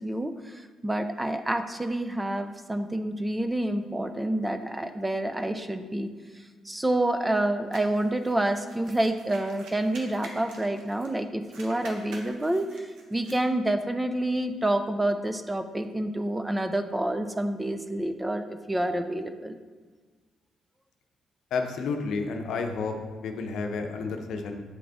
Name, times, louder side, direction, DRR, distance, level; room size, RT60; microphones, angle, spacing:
voice 1, 0.0-6.1 6.7-19.6, right 1 dB, 15° right, 8 dB, 0.4 m, -28 dB
sound 1, 7.7-11.2 11.4-13.4, right 2 dB, 80° right, 1.0 m, -48 dB
voice 2, 21.5-22.9 23.2-24.6, left 4 dB, 75° left, 4 dB, 0.7 m, -30 dB
8.6 x 3.8 x 3.4 m, 1.4 s
cardioid pair, 90°, 0 cm